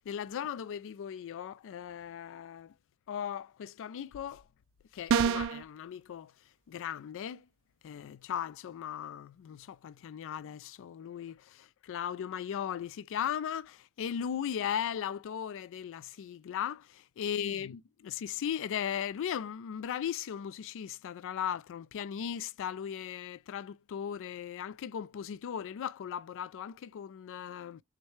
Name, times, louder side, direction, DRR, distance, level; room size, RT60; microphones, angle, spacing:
voice 1, 0.0-2.7 3.1-4.4 4.9-6.3 6.7-7.4 7.8-27.8, left 9 dB, 60° left, 0.3 m, -37 dB
sound 1, 5.1-5.6, right 7 dB, 60° right, 0.4 m, -26 dB
6.3 x 2.2 x 3.1 m
head